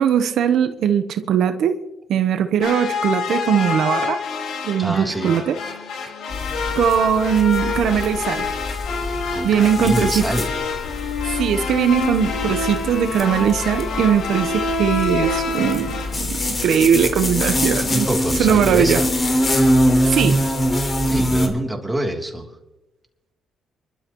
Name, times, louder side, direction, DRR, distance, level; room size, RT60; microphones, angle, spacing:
voice 1, 0.0-1.8 2.1-4.2 4.6-5.6 6.7-8.5 9.4-10.2 11.3-18.1 18.4-19.0 20.1-20.4, right 8 dB, 75° right, 0.9 m, -20 dB
sound 1, 2.6-16.2, left 4 dB, 80° left, 4.7 m, -27 dB
voice 2, 4.8-5.4 9.0-10.5 17.9-19.1 21.1-22.6, right 1 dB, 10° right, 3.1 m, -25 dB
sound 2, 4.9-11.7 12.0-12.2 12.6-12.7, left 6 dB, 55° left, 7.6 m, -47 dB
sound 3, 6.3-21.5, equal, 30° left, 3.6 m, -24 dB
29.5 x 12.5 x 3.1 m
cardioid pair, 90°, 0 cm